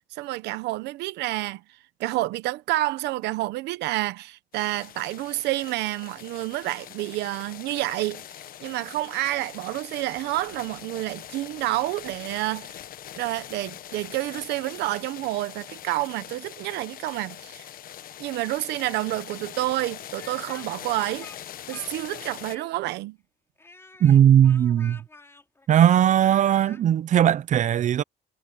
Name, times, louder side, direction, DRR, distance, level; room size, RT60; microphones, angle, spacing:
voice 1, 0.1-1.6 2.0-8.2 8.6-12.8 13.2-17.7 18.2-21.3 21.7-23.2, right 17 dB, 85° right, 1.0 m, -29 dB
sound 1, 4.5-22.5, left 11 dB, 60° left, 1.2 m, -42 dB
Speech, 20.1-23.0 23.6-26.8, left 2 dB, 15° left, 3.8 m, -48 dB
voice 2, 24.0-25.0 25.7-28.0, right 10 dB, 45° right, 0.6 m, -18 dB
cardioid pair, 110°, 17 cm